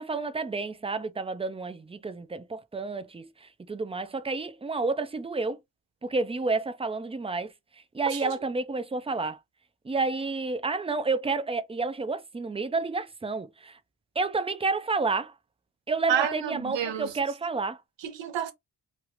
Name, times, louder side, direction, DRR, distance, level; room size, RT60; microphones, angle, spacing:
voice 1, 0.0-5.6 6.0-7.5 7.9-9.4 9.8-13.8 14.2-15.3 15.9-17.8, right 3 dB, 15° right, 0.3 m, -30 dB
voice 2, 16.1-17.1 18.0-18.5, right 8 dB, 90° right, 0.7 m, -29 dB
3.1 x 2.4 x 2.9 m
wide cardioid pair, 115°, 43 cm